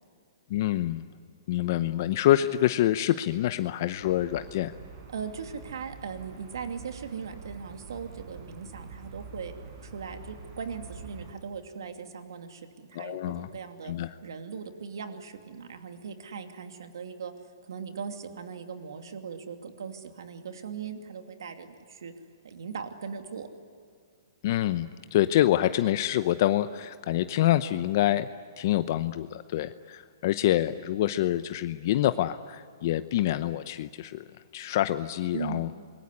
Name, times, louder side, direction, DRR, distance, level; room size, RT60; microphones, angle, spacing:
voice 1, 0.5-1.0 1.5-4.7 12.9-13.5 13.8-14.1 24.4-28.3 28.6-34.2 34.5-35.7, left 13 dB, 45° left, 12 dB, 0.8 m, -26 dB
sound 1, 4.0-11.3, right 4 dB, 40° right, 6.8 m, -46 dB
voice 2, 5.1-9.5 9.8-13.9 14.2-17.3 17.6-22.1 22.4-23.5 35.3-35.7, right 6 dB, 75° right, 6 dB, 2.7 m, -39 dB
26.5 x 22.5 x 9.7 m, 2.2 s
hypercardioid pair, 150°, 2 cm